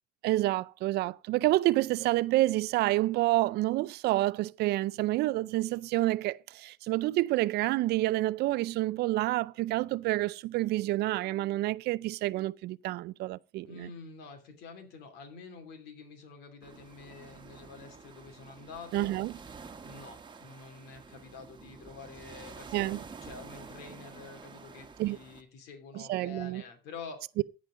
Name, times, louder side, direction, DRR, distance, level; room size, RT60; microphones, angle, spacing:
voice 1, 0.2-13.7 18.9-19.3 22.7-23.0 25.0-25.2 25.9-26.6 27.4-27.5, right 17 dB, 75° right, 0.4 m, -28 dB
voice 2, 13.7-19.2 19.8-27.2, left 4 dB, 85° left, 2.8 m, -48 dB
sound 1, 16.6-25.4, right 5 dB, 25° right, 1.2 m, -49 dB
15.0 x 5.2 x 5.0 m
cardioid pair, 110°, 17 cm